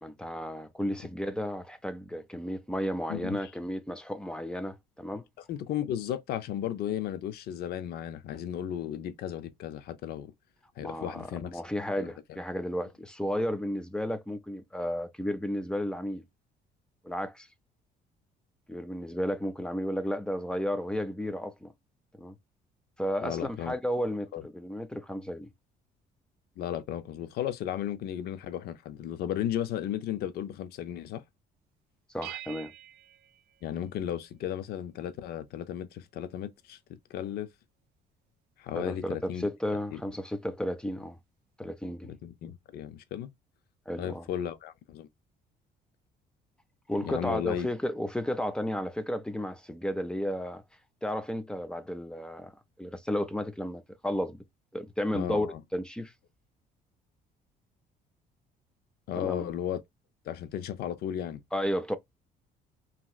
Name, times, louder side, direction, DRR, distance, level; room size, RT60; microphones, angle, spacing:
voice 1, 0.0-5.2 10.8-16.2 17.0-17.5 18.7-21.7 22.2-22.3 23.0-25.5 32.1-32.7 38.8-41.2 41.6-42.2 43.9-44.3 46.9-50.6 51.0-52.5 52.8-54.4 54.7-55.5 55.7-56.1 59.2-59.4 61.5-62.0, equal, 5° left, 0.5 m, -33 dB
voice 2, 3.1-3.5 5.5-10.3 10.8-11.6 12.0-12.1 23.2-23.7 24.3-24.4 26.6-31.2 33.6-36.8 37.1-37.5 38.6-39.5 39.9-40.0 42.1-43.3 44.0-45.1 47.0-47.7 55.1-55.6 59.1-59.8 60.3-61.4, left 10 dB, 70° left, 0.5 m, -34 dB
sound 1, 32.2-34.4, right 14 dB, 70° right, 0.4 m, -46 dB
2.9 x 2.8 x 2.3 m
cardioid pair, 110°, 17 cm